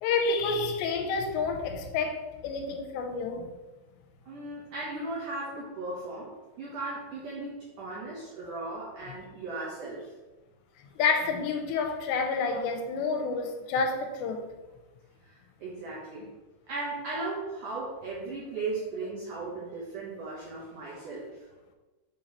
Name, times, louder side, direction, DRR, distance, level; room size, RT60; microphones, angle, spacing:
voice 1, 0.0-3.5 8.4-8.6 11.0-14.5, left 4 dB, 85° left, 4 dB, 2.9 m, -29 dB
voice 2, 4.3-10.1 15.2-16.3 16.7-21.4, right 3 dB, 80° right, -5 dB, 1.8 m, -37 dB
7.1 x 2.9 x 5.5 m, 1.1 s
omnidirectional pair, 5.0 m